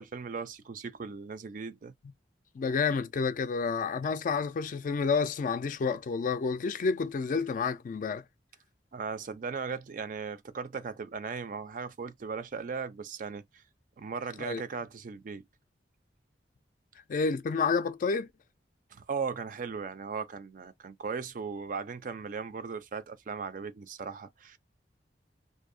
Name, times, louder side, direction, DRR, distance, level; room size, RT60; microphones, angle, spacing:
voice 1, 0.0-1.9 8.9-13.4 14.0-15.4 18.9-24.6, right 5 dB, 50° right, 0.4 m, -37 dB
voice 2, 2.5-8.2 14.4-14.6 17.1-18.3, left 5 dB, 50° left, 0.3 m, -29 dB
2.6 x 2.0 x 2.5 m
head